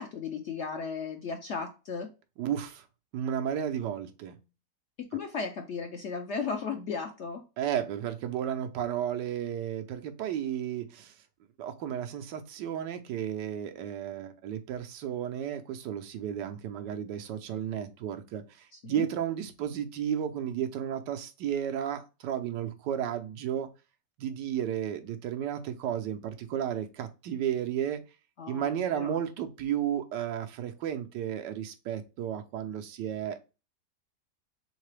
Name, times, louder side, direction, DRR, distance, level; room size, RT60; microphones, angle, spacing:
voice 1, 0.0-2.1 5.0-7.4 18.7-19.1 28.4-29.2, left 5 dB, 65° left, 4 dB, 0.7 m, -35 dB
voice 2, 2.4-2.9 3.1-4.4 7.6-11.1 11.6-23.7 24.2-28.0 28.5-33.4, right 9 dB, 90° right, 7 dB, 1.3 m, -33 dB
3.9 x 3.7 x 3.2 m, 0.29 s
omnidirectional pair, 1.8 m